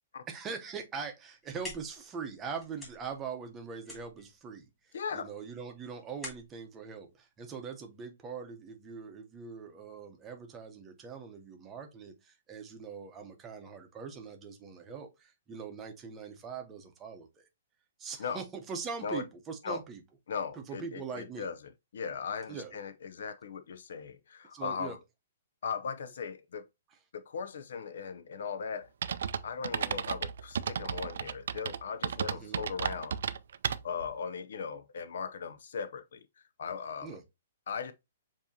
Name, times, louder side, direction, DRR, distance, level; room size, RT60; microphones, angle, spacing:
voice 1, 0.3-17.4 18.0-20.0 20.5-21.5 22.5-22.7 24.5-25.0 32.3-32.6 37.0-37.2, right 5 dB, 15° right, 0.8 m, -42 dB
sound 1, 1.2-8.0, left 1 dB, 5° left, 2.1 m, -49 dB
voice 2, 4.9-5.3 18.2-18.4 19.0-19.2 19.6-19.8 20.3-21.6 21.9-25.0 25.6-26.7 27.1-28.9 29.4-33.2 33.8-36.2 36.6-37.2 37.7-37.9, left 6 dB, 70° left, 0.5 m, -38 dB
sound 2, 29.0-34.1, right 7 dB, 70° right, 0.4 m, -34 dB
7.1 x 2.7 x 2.7 m
hypercardioid pair, 165°, 0 cm